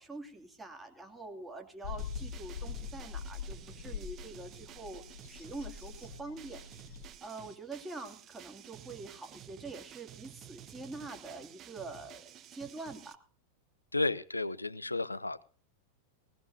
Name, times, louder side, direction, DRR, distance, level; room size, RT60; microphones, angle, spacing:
voice 1, 0.0-6.6 7.2-13.2, right 3 dB, 10° right, 4 dB, 2.5 m, -45 dB
sound 1, 1.8-7.1, left 7 dB, 55° left, 1.9 m, -43 dB
sound 2, 1.8-13.2, right 11 dB, 30° right, 0.8 m, -52 dB
voice 2, 13.9-15.4, left 2 dB, 85° left, 15 dB, 0.7 m, -32 dB
20.0 x 17.5 x 2.7 m, 0.40 s
figure-of-eight pair, 90°, 0 cm